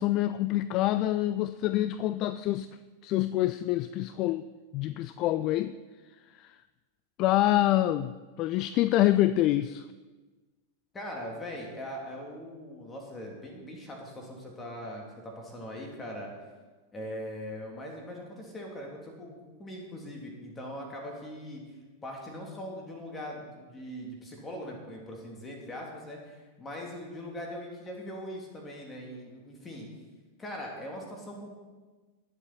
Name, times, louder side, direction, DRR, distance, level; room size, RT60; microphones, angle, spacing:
voice 1, 0.0-2.7 3.0-4.5 4.7-5.8 6.3-6.6 7.2-9.9, left 14 dB, 40° left, 14 dB, 0.4 m, -26 dB
voice 2, 10.9-16.3 16.9-19.3 19.6-21.6 22.0-29.9 30.4-31.5, equal, 15° left, 0 dB, 3.0 m, -41 dB
19.0 x 7.7 x 4.3 m, 1.3 s
figure-of-eight pair, 90°, 0 cm